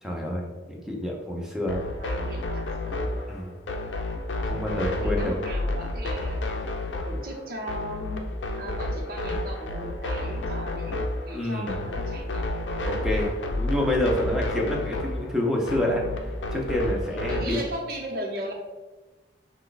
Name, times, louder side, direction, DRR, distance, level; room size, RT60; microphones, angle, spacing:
voice 1, 0.0-1.8 3.3-3.5 4.4-5.3 11.3-11.8 12.8-16.0 16.5-17.6, left 1 dB, 5° right, -1 dB, 0.7 m, -28 dB
sound 1, 1.7-17.6, left 1 dB, 85° left, 0.5 m, -30 dB
voice 2, 2.0-3.4 5.0-6.6 7.0-8.3 8.6-12.5 17.3-18.5, right 1 dB, 55° right, -1 dB, 0.9 m, -37 dB
5.8 x 2.3 x 3.9 m, 1.2 s
head